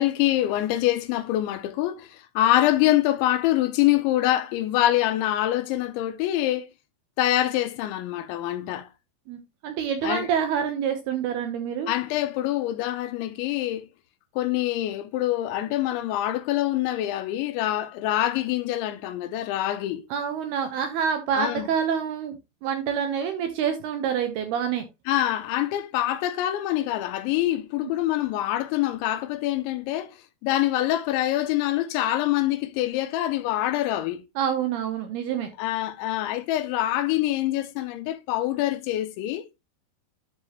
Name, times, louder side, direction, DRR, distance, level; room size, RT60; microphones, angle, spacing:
voice 1, 0.0-6.7 7.2-8.9 10.0-10.3 11.9-13.9 14.4-20.1 21.4-21.7 25.1-30.2 30.4-34.2 35.6-39.5, left 14 dB, 80° left, 2.9 m, -25 dB
voice 2, 9.3-11.9 20.1-22.4 22.6-24.9 27.8-27.9 34.4-35.5, right 7 dB, 75° right, 2.4 m, -27 dB
12.0 x 4.7 x 3.1 m
omnidirectional pair, 5.5 m